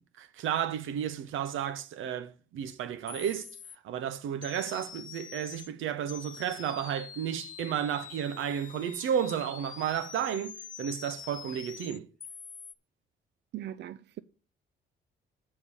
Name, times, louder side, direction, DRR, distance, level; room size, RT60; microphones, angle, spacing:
voice 1, 0.2-3.5 3.8-12.1, right 9 dB, 80° right, 0.9 m, -32 dB
sound 1, 2.7-2.8 3.1-3.8 4.4-5.7 6.1-12.7, left 8 dB, 40° left, 0.7 m, -46 dB
voice 2, 13.5-14.2, right 12 dB, 60° right, 0.5 m, -40 dB
8.4 x 4.6 x 7.2 m
cardioid pair, 90°, 20 cm